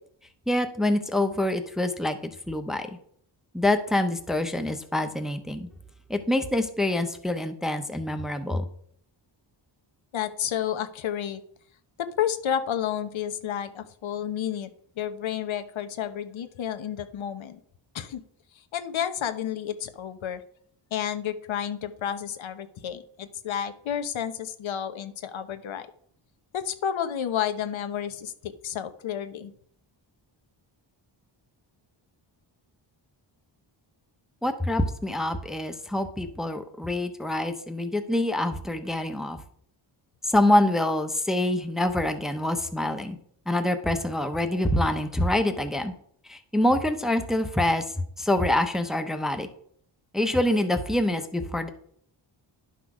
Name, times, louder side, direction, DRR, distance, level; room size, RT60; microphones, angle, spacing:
voice 1, 0.5-2.2 2.5-2.9 3.5-5.7 6.1-8.6 34.4-39.4 40.2-43.2 43.5-45.9 46.3-47.8 48.2-49.5 50.1-51.7, left 1 dB, ahead, 8 dB, 0.6 m, -25 dB
voice 2, 10.1-11.4 12.0-14.7 15.0-17.6 17.9-18.2 18.5-20.4 20.9-25.9 26.5-29.5, left 9 dB, 85° left, 10 dB, 1.1 m, -31 dB
11.0 x 6.1 x 4.8 m, 0.63 s
wide cardioid pair, 175°, 46 cm